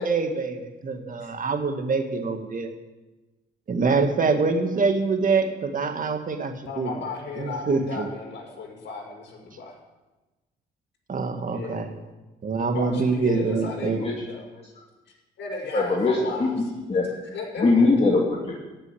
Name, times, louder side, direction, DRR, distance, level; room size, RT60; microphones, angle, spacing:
voice 1, 0.0-2.7 3.7-6.9 7.4-8.1 11.1-11.9 12.4-14.0, right 4 dB, 40° right, 6 dB, 1.9 m, -25 dB
voice 2, 6.7-9.8 11.5-11.9 12.5-14.4 15.4-16.5 17.3-17.9, left 4 dB, 65° left, -2 dB, 5.7 m, -35 dB
voice 3, 15.7-17.0 17.6-18.5, left 3 dB, 30° left, -3 dB, 2.8 m, -21 dB
14.5 x 6.8 x 10.0 m, 1.1 s
cardioid pair, 90°, 20 cm